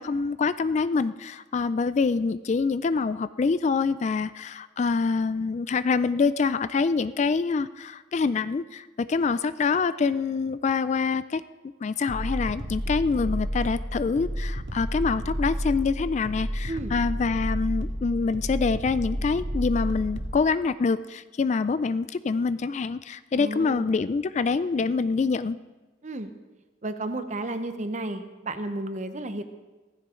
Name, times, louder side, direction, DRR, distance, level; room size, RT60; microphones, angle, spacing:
voice 1, 0.0-11.4 11.8-25.6, left 4 dB, 35° left, 15 dB, 0.3 m, -26 dB
sound 1, 12.1-20.4, equal, 65° right, 2.1 m, -31 dB
voice 2, 23.3-23.9 26.0-26.3 26.8-29.4, right 2 dB, 40° right, 9 dB, 0.9 m, -32 dB
16.0 x 15.0 x 3.8 m, 1.2 s
head